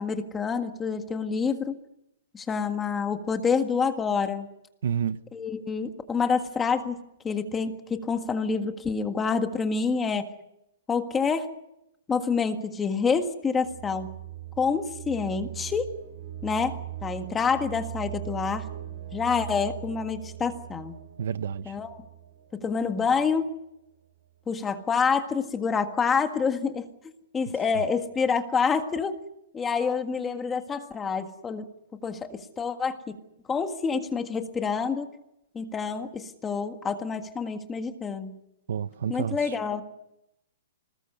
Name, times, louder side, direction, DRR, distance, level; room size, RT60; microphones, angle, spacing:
voice 1, 0.0-1.8 2.3-4.5 5.3-7.0 7.2-10.3 10.9-11.5 12.1-14.2 14.6-15.9 16.4-18.7 19.1-21.0 21.7-22.0 22.5-23.5 24.5-26.9 27.3-29.2 29.5-31.7 32.0-33.1 33.5-35.1 35.5-38.4 39.1-39.8, left 5 dB, 10° left, 7 dB, 1.7 m, -27 dB
voice 2, 4.8-5.2 21.2-21.7 38.7-39.5, right 8 dB, 65° right, 14 dB, 1.1 m, -29 dB
sound 1, 13.6-23.4, right 13 dB, 40° right, 4.2 m, -40 dB
26.5 x 20.0 x 6.8 m, 0.83 s
hypercardioid pair, 170°, 0 cm